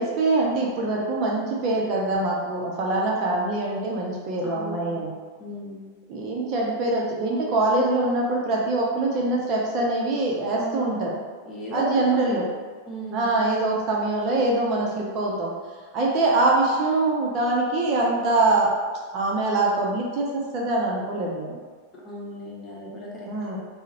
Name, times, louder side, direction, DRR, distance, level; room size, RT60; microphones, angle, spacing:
voice 1, 0.0-5.1 6.1-11.1 11.7-12.5 13.1-15.5 15.9-18.8 19.1-21.6 23.3-23.6, right 2 dB, 40° right, -3 dB, 0.5 m, -24 dB
voice 2, 4.4-5.0 5.4-5.9 10.5-11.1 11.5-12.5 12.9-13.3 22.0-23.6, equal, 20° left, -5 dB, 0.8 m, -35 dB
3.7 x 2.1 x 2.8 m, 1.5 s
figure-of-eight pair, 90°, 0 cm